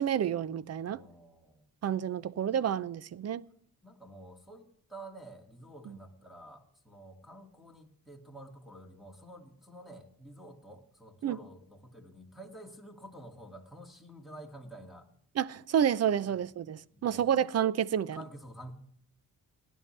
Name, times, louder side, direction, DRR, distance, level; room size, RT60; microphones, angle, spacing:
voice 1, 0.0-1.0 1.8-3.5 5.9-6.0 11.2-11.4 15.4-18.2, right 9 dB, 45° right, 0.6 m, -29 dB
voice 2, 0.9-1.9 3.8-15.1 16.2-16.4 16.9-17.3 18.1-18.7, right 1 dB, ahead, 2.2 m, -50 dB
18.0 x 10.0 x 3.3 m
cardioid pair, 110°, 35 cm